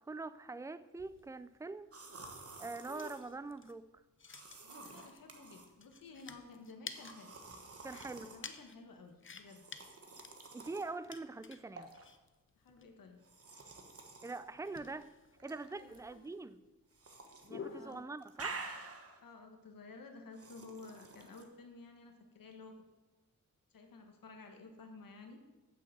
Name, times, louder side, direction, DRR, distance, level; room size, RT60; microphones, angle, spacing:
voice 1, 0.0-1.9 2.6-3.9 7.8-8.3 10.5-11.9 14.2-15.1 15.4-16.6 17.5-18.6, right 3 dB, 10° right, 14 dB, 0.3 m, -44 dB
sound 1, 1.0-18.1, left 5 dB, 40° left, 0.7 m, -53 dB
sound 2, 1.9-3.2 4.3-5.7 7.0-8.4 9.4-10.9 11.8-12.0 13.2-14.4 15.4-16.0 16.9-17.5 17.8-19.2 20.3-21.4, right 3 dB, 45° right, 1.2 m, -49 dB
voice 2, 4.6-7.4 8.2-9.6 12.6-13.2 15.7-16.3 17.7-18.0 19.2-22.8 23.7-25.4, left 3 dB, 85° left, 4 dB, 1.3 m, -53 dB
7.8 x 6.6 x 7.9 m, 1.1 s
wide cardioid pair, 145°, 33 cm